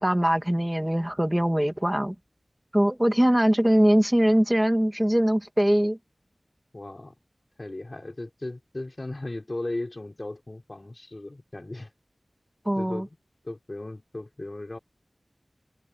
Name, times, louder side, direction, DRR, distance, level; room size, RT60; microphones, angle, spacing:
voice 1, 0.0-2.1 2.7-6.0 12.7-13.1, equal, 10° right, 2.5 m, -22 dB
voice 2, 6.7-7.1 7.6-11.9 12.7-13.2 13.4-14.8, left 2 dB, 45° left, 5.5 m, -36 dB
wide cardioid pair, 45°, 0 cm